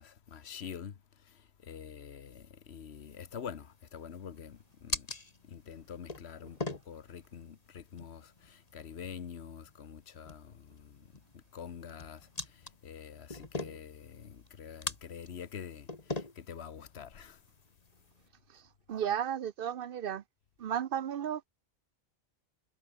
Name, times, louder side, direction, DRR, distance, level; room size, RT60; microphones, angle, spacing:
voice 1, 0.0-5.1 5.4-17.4, left 7 dB, 85° left, 1.4 m, -46 dB
sound 1, 2.9-18.3, left 2 dB, 40° left, 2.4 m, -44 dB
voice 2, 18.9-20.2 20.6-21.5, right 9 dB, 65° right, 0.8 m, -33 dB
omnidirectional pair, 1.1 m